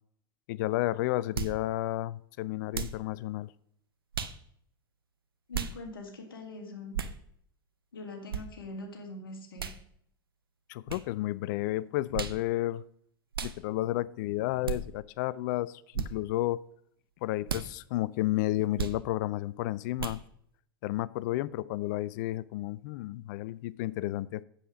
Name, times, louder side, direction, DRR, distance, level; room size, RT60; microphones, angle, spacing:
voice 1, 0.5-3.5 10.7-12.8 13.4-16.6 17.2-20.2 20.8-24.4, left 16 dB, 55° left, 19 dB, 0.4 m, -32 dB
sound 1, 1.3-1.6 2.7-3.0 4.1-4.4 5.5-5.7 6.9-7.2 8.3-8.4 9.6-9.8 10.9-11.0 12.1-12.4 13.3-13.6 14.6-14.8 15.9-16.1 17.4-17.7 18.8-19.0 20.0-20.2, right 7 dB, 80° right, 0.7 m, -34 dB
voice 2, 5.5-7.0 7.9-9.7, left 2 dB, 75° left, 4 dB, 1.9 m, -43 dB
8.3 x 7.3 x 5.2 m, 0.68 s
figure-of-eight pair, 85°, 12 cm